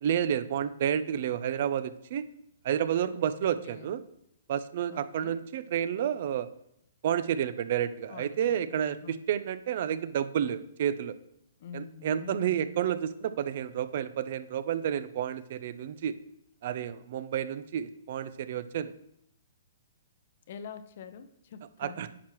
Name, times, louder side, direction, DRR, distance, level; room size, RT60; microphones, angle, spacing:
voice 1, 0.0-2.2 2.6-4.0 4.5-6.5 7.0-11.2 11.7-16.1 16.6-18.9 21.8-22.1, right 9 dB, 55° right, 13 dB, 0.5 m, -30 dB
voice 2, 3.4-3.9 4.9-5.4 8.1-8.7 9.0-9.2 11.6-12.6 20.5-22.1, left 7 dB, 55° left, 12 dB, 0.7 m, -45 dB
10.0 x 6.0 x 3.0 m, 0.75 s
hypercardioid pair, 130°, 0 cm